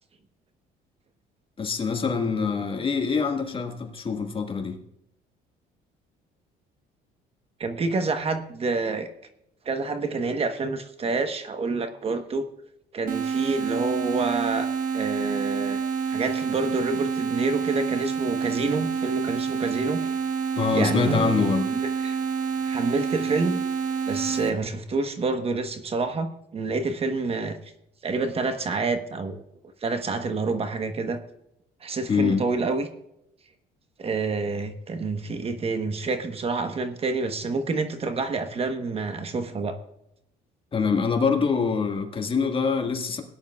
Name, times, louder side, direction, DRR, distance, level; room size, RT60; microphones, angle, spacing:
voice 1, 1.6-4.8 20.6-21.7 32.1-32.4 40.7-43.2, left 5 dB, 30° left, 4 dB, 1.8 m, -24 dB
voice 2, 7.6-9.1 9.6-12.5 12.9-14.7 14.9-15.8 16.1-20.2 20.7-22.2 22.6-23.6 24.1-27.6 28.0-29.4 29.8-31.2 31.8-32.9 34.0-39.8, right 3 dB, 35° right, 8 dB, 1.1 m, -28 dB
sound 1, 13.1-24.5, right 6 dB, 55° right, 1.4 m, -28 dB
18.0 x 10.0 x 2.4 m, 0.80 s
cardioid pair, 110°, 17 cm